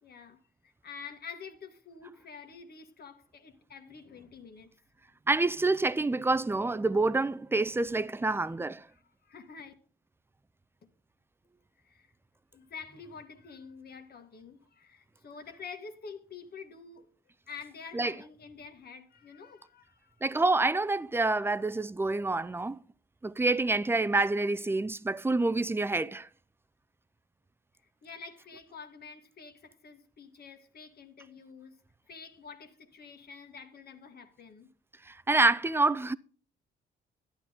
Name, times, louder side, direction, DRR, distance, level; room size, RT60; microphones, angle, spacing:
voice 1, 0.0-4.7 8.2-8.4 8.9-9.7 11.8-12.1 12.5-17.1 17.5-20.1 28.0-31.8 32.1-34.7, left 5 dB, 50° left, 1.9 m, -48 dB
voice 2, 5.3-8.9 17.9-18.1 20.2-22.8 23.2-26.3 35.1-36.2, right 2 dB, 10° right, 0.5 m, -27 dB
11.5 x 10.0 x 3.6 m
cardioid pair, 90°, 20 cm